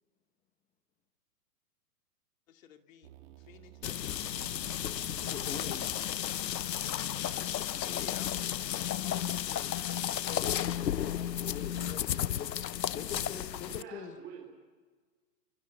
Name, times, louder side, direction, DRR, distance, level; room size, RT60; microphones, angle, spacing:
voice 1, 2.5-3.1 3.4-4.2 7.9-10.3, left 9 dB, 55° left, 5 dB, 2.5 m, -53 dB
sound 1, 3.0-8.9, right 14 dB, 45° right, 2.4 m, -55 dB
sound 2, 3.8-13.8, left 11 dB, 85° left, 0.9 m, -33 dB
voice 2, 5.2-6.0 7.8-8.2 10.3-12.5 12.9-14.2, left 6 dB, 15° left, 7 dB, 1.5 m, -44 dB
voice 3, 6.7-8.1 13.7-14.5, right 7 dB, 25° right, 0 dB, 3.8 m, -50 dB
26.0 x 23.0 x 8.4 m, 1.4 s
hypercardioid pair, 145°, 49 cm